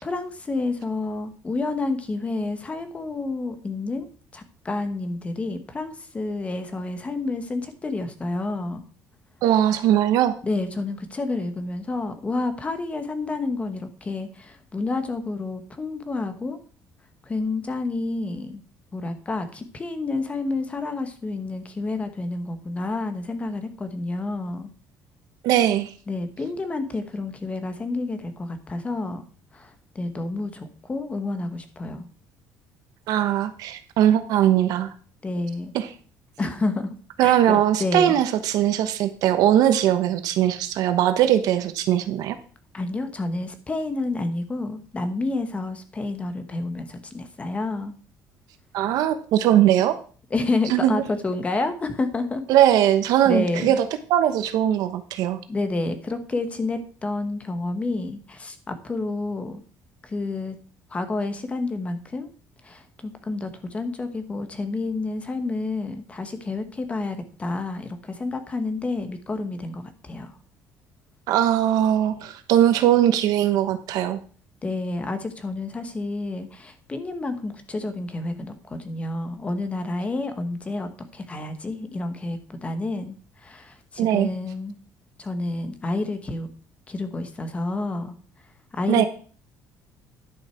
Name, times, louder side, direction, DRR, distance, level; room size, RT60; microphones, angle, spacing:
voice 1, 0.0-4.1 4.3-8.8 10.4-16.6 17.2-18.6 18.9-24.7 26.1-29.2 29.5-32.1 35.2-35.7 36.4-36.9 37.2-38.1 42.7-47.9 50.3-52.4 53.2-53.8 55.5-59.6 60.0-60.6 60.9-62.3 62.6-70.3 74.6-84.8 85.2-86.5 86.9-88.1 88.7-89.0, left 2 dB, 20° left, 8 dB, 1.2 m, -29 dB
voice 2, 9.4-10.3 25.4-25.9 33.1-34.9 35.7-35.9 37.2-42.4 48.7-50.0 50.7-51.0 52.5-55.4 71.3-74.2 84.0-84.3 88.9-89.0, right 11 dB, 75° right, 10 dB, 1.1 m, -20 dB
11.0 x 6.4 x 4.5 m, 0.41 s
cardioid pair, 145°, 6 cm